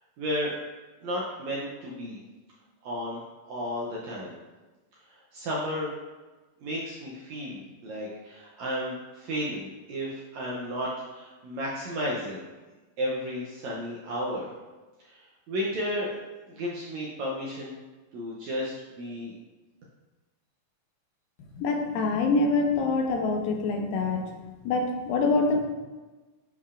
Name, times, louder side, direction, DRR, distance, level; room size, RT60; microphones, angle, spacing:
voice 1, 0.2-0.6 1.0-2.2 2.8-3.2 3.5-4.4 5.1-5.9 6.6-12.5 13.0-14.5 15.0-15.2 15.5-16.2 16.5-17.8 18.1-19.3, equal, 75° right, -4 dB, 1.6 m, -33 dB
voice 2, 21.6-24.4 24.7-25.7, left 3 dB, 85° left, 3 dB, 2.5 m, -25 dB
10.5 x 4.6 x 2.5 m, 1.2 s
omnidirectional pair, 4.1 m